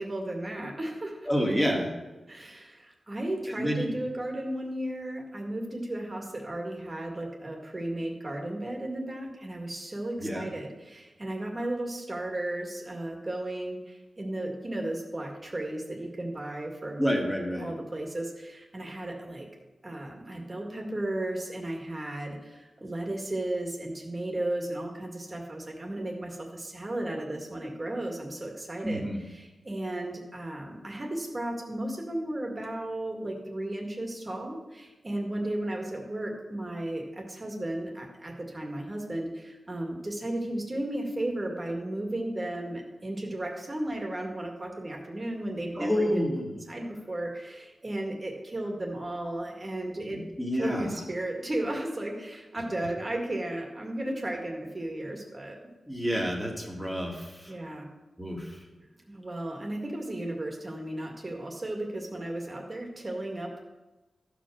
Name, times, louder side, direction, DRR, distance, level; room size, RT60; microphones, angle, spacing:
voice 1, 0.0-1.3 2.3-17.1 17.6-19.5 19.8-46.2 46.7-50.3 50.6-55.6 57.5-57.9 59.1-63.6, right 1 dB, 30° right, 1 dB, 2.0 m, -34 dB
voice 2, 1.3-1.9 3.5-4.0 10.2-10.4 17.0-17.7 28.8-29.2 45.8-46.6 50.1-50.9 55.9-57.5 58.2-58.6, equal, ahead, -1 dB, 2.1 m, -29 dB
14.0 x 5.1 x 6.3 m, 1.1 s
wide cardioid pair, 115°, 0 cm